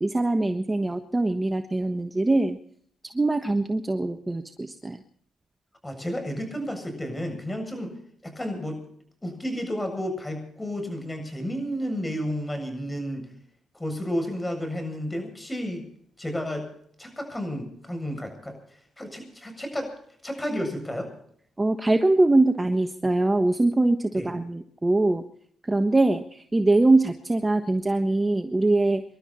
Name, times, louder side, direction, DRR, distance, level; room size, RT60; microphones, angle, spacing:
voice 1, 0.0-2.6 3.1-5.0 21.6-25.2 25.7-29.0, right 2 dB, 15° right, 7 dB, 1.3 m, -23 dB
voice 2, 5.8-7.9 8.2-8.8 9.2-13.3 13.7-15.9 16.2-16.7 17.0-18.6 19.0-19.9 20.2-21.1 24.1-24.3, equal, 10° left, 5 dB, 7.7 m, -31 dB
27.0 x 12.5 x 4.3 m, 0.62 s
cardioid pair, 90°, 0 cm